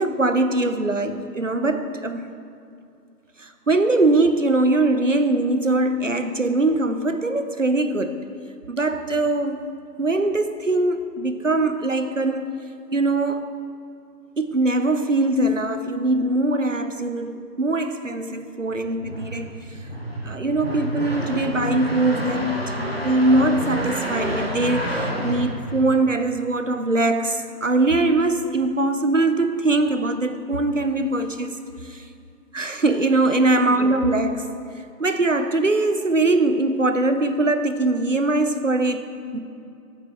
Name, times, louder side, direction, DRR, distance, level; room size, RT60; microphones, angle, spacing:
voice 1, 0.0-2.3 3.4-8.2 8.7-9.6 10.0-12.6 12.9-13.5 14.4-19.5 20.2-22.5 23.0-31.5 31.8-32.0 32.5-34.5 35.0-39.4, right 2 dB, 55° right, 9 dB, 0.6 m, -22 dB
sound 1, 18.7-26.3, equal, 40° left, 0.7 m, -29 dB
13.5 x 7.2 x 3.4 m, 2.6 s
figure-of-eight pair, 175°, 48 cm